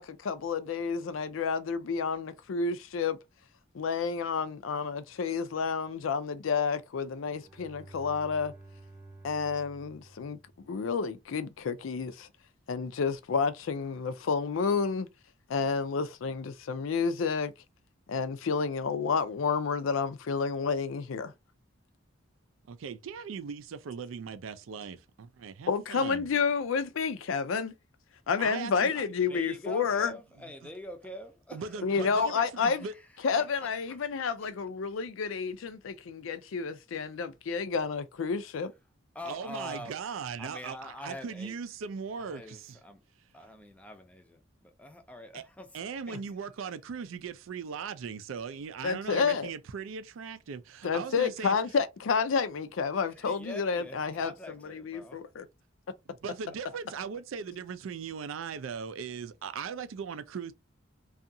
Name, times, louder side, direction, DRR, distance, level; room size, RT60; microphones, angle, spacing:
voice 1, 0.0-3.2 3.7-8.5 9.2-10.4 10.7-12.3 12.7-15.1 15.5-17.5 18.1-21.3 25.7-27.7 28.3-30.1 31.8-32.9 33.2-38.7 48.8-49.5 50.8-54.3 54.6-55.5, left 5 dB, 80° left, 0.4 m, -30 dB
Bowed string instrument, 7.2-11.1, right 2 dB, 15° right, 0.8 m, -52 dB
voice 2, 22.7-26.3 28.4-29.0 30.6-30.7 31.5-32.9 39.2-42.8 45.3-45.5 45.7-51.6 56.2-60.5, right 6 dB, 85° right, 0.4 m, -39 dB
voice 3, 28.9-32.4 32.7-33.1 33.4-34.1 39.1-40.0 40.4-41.6 42.3-43.0 43.3-45.7 53.1-55.2, left 1 dB, 5° left, 0.4 m, -45 dB
2.7 x 2.4 x 2.6 m
head